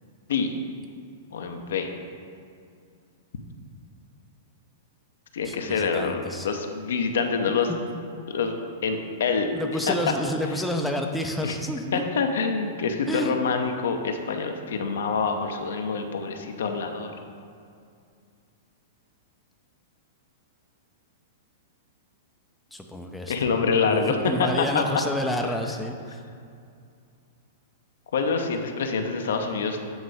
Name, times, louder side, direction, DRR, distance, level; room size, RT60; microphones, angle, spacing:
voice 1, 1.3-1.9 5.3-7.7 8.3-9.5 9.9-10.0 11.4-11.5 11.9-17.1 23.3-24.8 25.4-25.5 28.1-29.8, left 5 dB, 65° left, 5 dB, 0.6 m, -26 dB
voice 2, 5.4-6.5 7.7-7.8 8.2-8.3 9.5-12.1 13.1-13.3 22.7-23.3 23.9-26.2, left 1 dB, 5° left, 2 dB, 0.5 m, -29 dB
8.0 x 4.0 x 4.8 m, 2.4 s
figure-of-eight pair, 100°, 0 cm